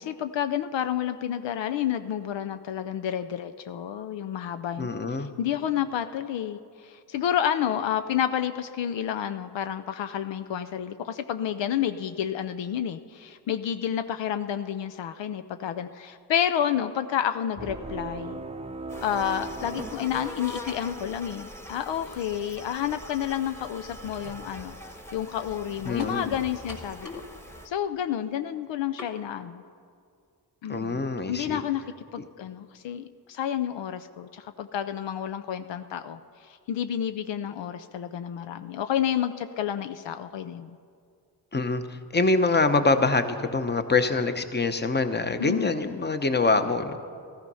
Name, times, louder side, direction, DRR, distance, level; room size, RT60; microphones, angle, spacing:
voice 1, 0.0-18.4 19.0-24.8 25.1-27.1 27.6-29.6 30.6-31.8 32.1-40.8 45.4-45.7, left 9 dB, 75° left, 10 dB, 0.6 m, -30 dB
voice 2, 4.8-5.3 25.8-26.3 30.7-31.6 41.5-47.0, left 3 dB, 25° left, 9 dB, 1.0 m, -25 dB
sound 1, 17.6-20.9, right 3 dB, 15° right, 0.7 m, -38 dB
sound 2, 18.9-27.7, equal, 5° left, 1.3 m, -42 dB
sound 3, 20.7-21.0 21.9-22.0 26.0-26.2 26.7-27.3 27.6-27.7 29.0-29.2, left 2 dB, 45° left, 2.6 m, -41 dB
14.5 x 13.0 x 5.5 m, 2.3 s
cardioid pair, 60°, 44 cm